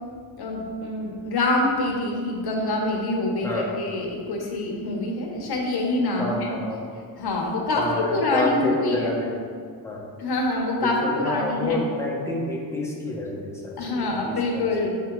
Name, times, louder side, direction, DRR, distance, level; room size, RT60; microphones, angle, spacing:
voice 1, 0.4-6.5 7.2-9.1 10.2-11.8 13.8-14.9, left 2 dB, 70° left, 0 dB, 1.2 m, -25 dB
voice 2, 6.2-6.8 7.7-9.4 9.8-10.1 10.8-14.9, left 1 dB, 5° left, -4 dB, 1.2 m, -29 dB
6.3 x 3.8 x 4.6 m, 2.1 s
cardioid pair, 100°, 40 cm